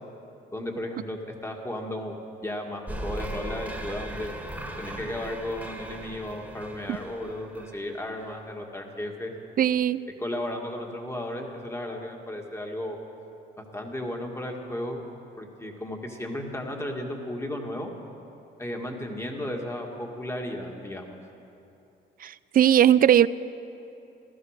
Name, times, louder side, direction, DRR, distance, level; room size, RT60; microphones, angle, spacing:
voice 1, 0.5-2.1 2.4-4.3 4.8-9.3 10.2-13.0 13.6-15.0 15.4-17.9 18.6-21.2, left 1 dB, 15° left, 2 dB, 2.0 m, -34 dB
sound 1, 2.9-8.3, right 1 dB, 5° right, 1.9 m, -38 dB
voice 2, 9.6-10.0 22.2-23.3, right 10 dB, 45° right, 18 dB, 0.4 m, -19 dB
15.0 x 13.0 x 6.6 m, 2.9 s
cardioid pair, 90°, 20 cm